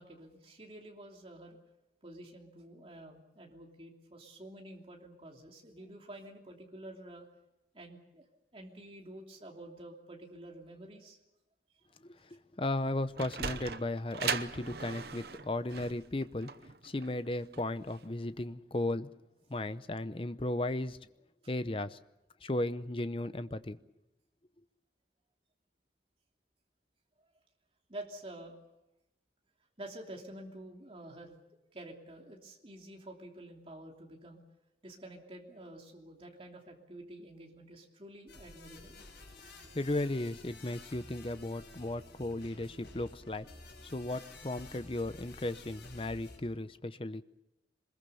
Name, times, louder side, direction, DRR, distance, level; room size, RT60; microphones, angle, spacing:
voice 1, 0.0-1.6 2.0-7.3 7.7-8.2 8.5-11.2 27.9-28.6 29.8-31.4 31.7-34.4 34.8-39.0 39.6-39.7, right 1 dB, 30° right, 3.0 m, -49 dB
voice 2, 12.0-16.5 16.8-19.1 19.5-21.0 21.5-22.0 22.4-23.8 39.4-43.5 43.8-47.2, left 1 dB, 30° left, 0.7 m, -35 dB
Sliding door, 12.9-18.1, right 6 dB, 60° right, 0.8 m, -39 dB
sound 1, 38.3-46.4, left 2 dB, 65° left, 6.9 m, -52 dB
24.0 x 21.5 x 7.0 m
head